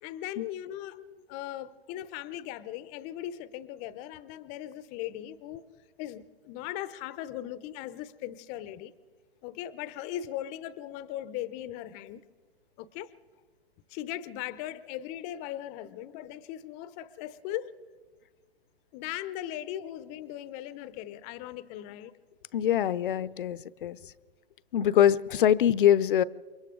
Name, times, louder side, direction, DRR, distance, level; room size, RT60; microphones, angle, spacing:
voice 1, 0.0-5.6 6.0-8.9 9.4-12.2 12.8-13.1 13.9-17.7 18.9-22.1, left 12 dB, 20° left, 0.7 m, -38 dB
voice 2, 22.5-24.0 24.7-26.2, left 10 dB, 55° left, 0.7 m, -23 dB
28.5 x 24.0 x 3.8 m
hypercardioid pair, 135°, 32 cm